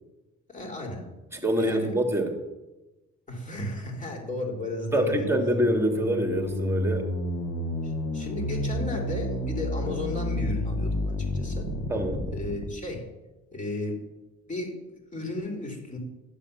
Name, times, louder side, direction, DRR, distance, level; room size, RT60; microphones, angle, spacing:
voice 1, 0.5-1.0 1.6-1.9 3.3-5.3 7.8-11.7 12.3-13.0 13.5-14.0 14.5-16.0, left 2 dB, 25° left, 1 dB, 4.4 m, -34 dB
voice 2, 1.3-2.3 4.9-7.1 9.8-10.0 11.9-12.3, right 1 dB, 10° right, 3 dB, 2.7 m, -26 dB
sound 1, 3.9-12.7, left 1 dB, 85° left, 2.0 m, -31 dB
13.0 x 7.7 x 7.3 m, 1.1 s
cardioid pair, 90°, 30 cm